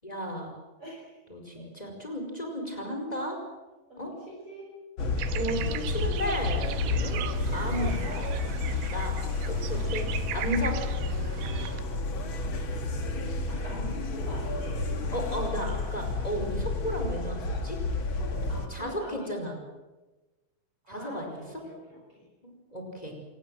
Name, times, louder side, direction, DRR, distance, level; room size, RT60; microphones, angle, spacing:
voice 1, 0.0-0.6 1.3-3.4 4.0-4.1 5.3-7.2 7.5-8.0 8.9-9.2 9.5-10.1 10.3-10.8 15.1-17.8 18.7-19.5 20.9-21.4 22.4-23.1, equal, 10° left, 2 dB, 4.7 m, -34 dB
voice 2, 0.8-1.2 1.6-1.7 4.0-4.7 6.6-7.2 7.7-8.4 13.5-14.8 18.2-19.3 20.8-22.3, equal, 30° right, -3 dB, 6.0 m, -44 dB
sound 1, 5.0-18.7, left 3 dB, 45° left, 1.8 m, -31 dB
sound 2, 5.2-11.8, right 11 dB, 85° right, 3.7 m, -38 dB
27.0 x 19.0 x 7.8 m, 1.2 s
omnidirectional pair, 5.2 m